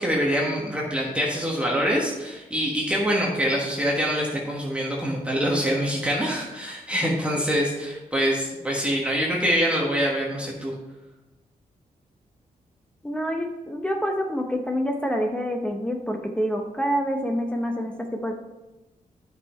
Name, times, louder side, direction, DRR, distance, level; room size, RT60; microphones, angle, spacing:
voice 1, 0.0-10.7, equal, 10° right, -4 dB, 1.4 m, -25 dB
voice 2, 13.0-18.3, equal, 5° left, 3 dB, 0.8 m, -27 dB
9.6 x 5.7 x 4.4 m, 1.1 s
wide cardioid pair, 110°, 14 cm